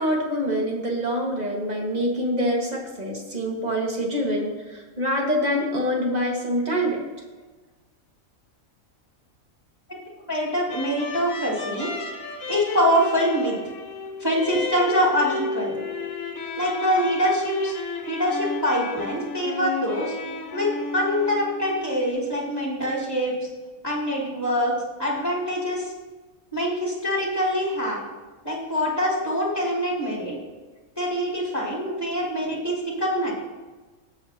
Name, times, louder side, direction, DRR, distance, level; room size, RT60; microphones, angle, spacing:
voice 1, 0.0-7.0, equal, 30° right, -1 dB, 2.0 m, -25 dB
voice 2, 10.3-11.9 12.5-13.5 14.2-15.8 16.6-17.7 18.1-20.1 20.5-23.3 23.8-24.7 25.0-25.9 26.5-28.0 28.4-30.4 31.0-33.3, equal, 15° left, -4 dB, 3.0 m, -24 dB
sound 1, 10.7-22.1, left 4 dB, 70° left, 1.4 m, -33 dB
18.0 x 7.1 x 2.9 m, 1.3 s
omnidirectional pair, 1.4 m